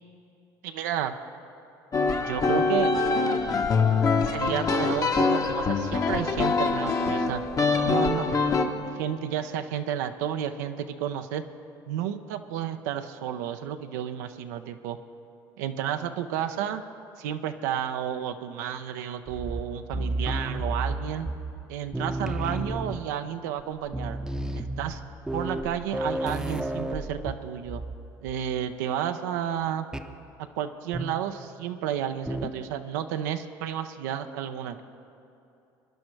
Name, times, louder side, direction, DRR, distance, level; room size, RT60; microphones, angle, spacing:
voice 1, 0.6-1.1 2.1-2.9 4.2-7.4 7.8-8.5 8.9-11.4 11.9-15.0 15.6-16.8 17.2-21.3 21.7-24.2 24.5-25.0 25.3-27.8 28.2-29.9 30.6-34.8, right 10 dB, 85° right, 7 dB, 0.6 m, -31 dB
sound 1, 1.9-8.7, left 4 dB, 40° left, 1.0 m, -24 dB
sound 2, 19.3-21.7 21.9-23.2 23.6-23.7 23.9-28.0 28.3-28.6 29.9-30.2 30.9-31.3 32.3-32.7, right 1 dB, 5° right, 0.7 m, -32 dB
22.0 x 10.5 x 3.2 m, 2.8 s
supercardioid pair, 85°, 9 cm